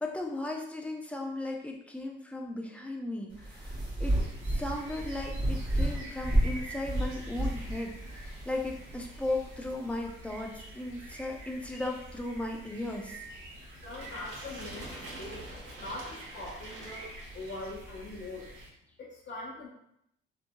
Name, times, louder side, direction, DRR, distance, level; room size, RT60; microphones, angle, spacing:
voice 1, 0.0-4.2 4.5-13.2, left 2 dB, 5° left, 1 dB, 0.4 m, -36 dB
sound 1, 3.3-9.7, right 1 dB, 20° right, 1.3 m, -32 dB
sound 2, 4.0-18.7, right 1 dB, 80° right, 0.7 m, -48 dB
voice 2, 13.8-18.5 19.0-19.7, left 2 dB, 65° left, -9 dB, 0.9 m, -42 dB
sound 3, 13.8-17.8, right 1 dB, 65° right, 1.2 m, -45 dB
2.8 x 2.5 x 2.2 m, 0.76 s
cardioid pair, 90°, 20 cm